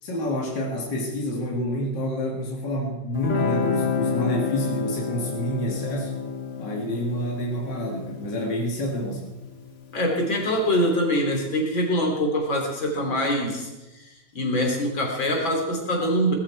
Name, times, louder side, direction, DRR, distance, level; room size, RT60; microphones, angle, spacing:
voice 1, 0.0-6.2 6.6-9.3, equal, 65° left, -2 dB, 2.7 m, -28 dB
Guitar, 3.1-10.3, left 6 dB, 35° left, 1.5 m, -30 dB
voice 2, 9.9-13.7 14.3-16.3, equal, 90° left, 1 dB, 4.0 m, -24 dB
20.0 x 13.5 x 4.6 m, 1.1 s
omnidirectional pair, 2.0 m